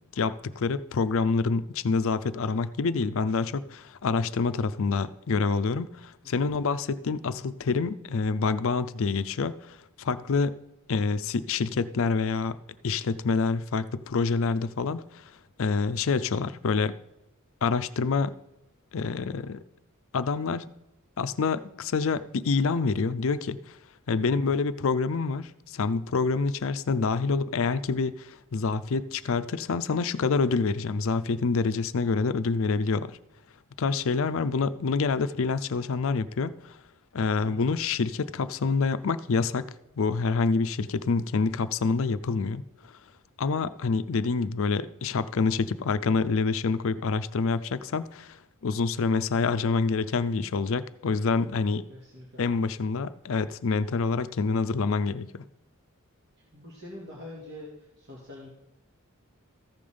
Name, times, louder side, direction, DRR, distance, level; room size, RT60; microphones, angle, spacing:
voice 1, 0.1-10.5 10.9-12.6 12.8-15.2 15.6-17.0 17.6-18.3 18.9-19.6 20.1-20.6 21.2-23.6 24.1-33.2 33.8-36.8 37.1-42.6 43.4-51.9 52.4-55.4, left 4 dB, 65° left, 0.5 m, -27 dB
voice 2, 37.4-37.7 51.9-52.4 56.5-58.5, left 1 dB, 55° right, 2.3 m, -45 dB
14.5 x 5.5 x 5.1 m
head